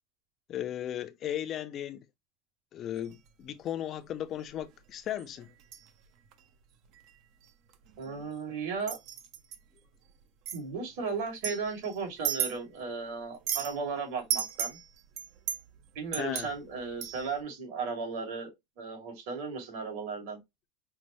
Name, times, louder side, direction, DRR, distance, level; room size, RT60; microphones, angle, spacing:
voice 1, 0.5-2.1 2.7-5.5 16.2-16.5, left 11 dB, 40° left, 0.5 m, -36 dB
sound 1, 3.0-3.3 4.4-4.6 5.2-5.9 6.2-6.4 6.9-7.2 7.4-8.4 8.8-9.6 10.5-10.6 11.3-12.9 13.2-13.8 14.3-17.4, right 9 dB, 60° right, 0.7 m, -35 dB
voice 2, 8.0-9.0 10.5-14.8 15.9-20.4, right 5 dB, 75° right, 2.5 m, -35 dB
5.5 x 2.1 x 3.0 m
supercardioid pair, 120°, 0 cm